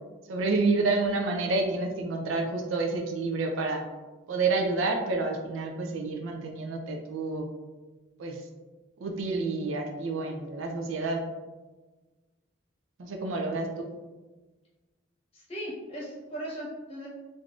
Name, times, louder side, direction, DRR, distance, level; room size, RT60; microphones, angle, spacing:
voice 1, 0.3-3.8 4.3-7.5 8.2-8.5 9.0-11.2 13.0-13.9, right 3 dB, 85° right, 2 dB, 0.4 m, -29 dB
voice 2, 15.3-17.1, equal, 30° left, -5 dB, 0.8 m, -38 dB
3.3 x 2.6 x 2.4 m, 1.2 s
head